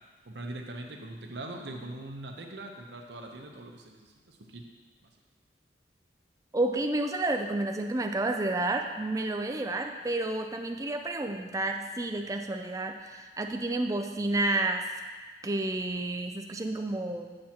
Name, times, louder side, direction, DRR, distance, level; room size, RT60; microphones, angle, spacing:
voice 1, 0.2-4.7, right 2 dB, 75° right, 2 dB, 0.9 m, -42 dB
voice 2, 6.5-14.9 15.4-17.4, right 2 dB, 20° right, 4 dB, 0.4 m, -30 dB
7.6 x 7.5 x 2.9 m, 1.4 s
head